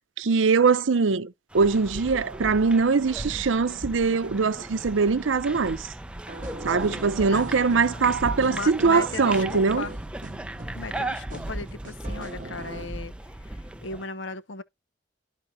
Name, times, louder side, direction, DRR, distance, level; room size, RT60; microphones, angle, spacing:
voice 1, 0.2-5.9 6.6-9.8, right 4 dB, 85° right, 0.6 m, -22 dB
sound 1, 1.5-14.0, right 1 dB, 5° right, 0.4 m, -37 dB
sound 2, 6.3-13.0, right 2 dB, 45° right, 0.7 m, -40 dB
voice 2, 8.4-9.9 10.7-13.1 13.4-14.6, left 3 dB, 75° left, 0.8 m, -36 dB
12.5 x 4.3 x 2.7 m
head